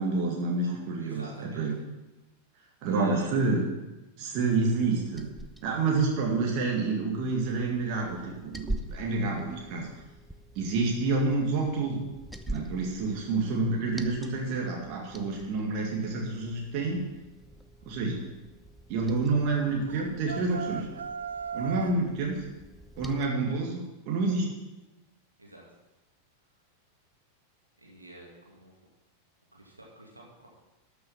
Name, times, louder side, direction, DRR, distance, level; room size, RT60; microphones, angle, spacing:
voice 1, 0.0-1.7 2.8-3.6 4.2-5.3 5.6-9.9 10.6-12.0 12.5-17.0 17.9-18.2 18.9-20.9 21.5-22.4 23.0-24.5, right 3 dB, 45° right, 0 dB, 1.9 m, -28 dB
voice 2, 0.6-1.6 2.9-3.4 25.4-25.6 27.8-28.8 29.5-30.5, right 1 dB, 85° right, -3 dB, 2.4 m, -48 dB
Liquid, 4.7-23.3, right 1 dB, ahead, 0.7 m, -45 dB
sound 1, 19.9-22.0, right 7 dB, 70° right, 0.3 m, -37 dB
12.5 x 6.4 x 5.8 m, 1.0 s
figure-of-eight pair, 90°, 0 cm